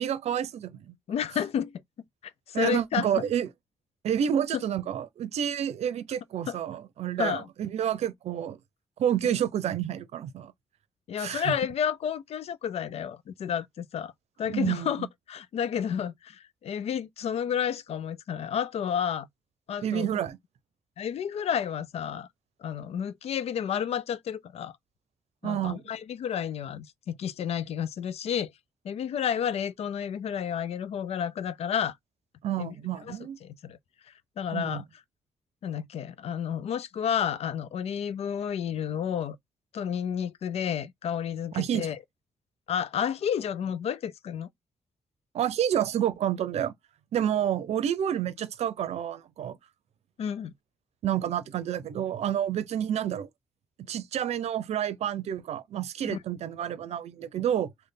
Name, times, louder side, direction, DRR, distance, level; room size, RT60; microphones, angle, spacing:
voice 1, 0.0-0.9 2.5-3.5 4.0-8.6 9.0-10.5 11.2-11.5 14.5-15.1 19.8-20.4 25.4-25.8 32.4-33.4 34.5-34.8 41.5-41.9 45.3-46.7 47.1-49.6 51.0-53.3 53.9-57.7, right 10 dB, 75° right, 0.6 m, -29 dB
voice 2, 1.1-1.8 2.2-3.1 4.5-4.6 6.5-6.6 7.2-7.5 11.1-14.1 14.4-19.3 19.7-20.1 21.0-22.3 22.6-24.7 25.4-28.5 28.8-32.0 32.6-32.7 33.0-33.8 34.1-34.8 35.6-39.4 39.7-42.0 42.7-44.5 50.2-50.5 56.0-56.2, left 8 dB, 65° left, 0.5 m, -31 dB
3.3 x 2.2 x 3.8 m
supercardioid pair, 50°, 11 cm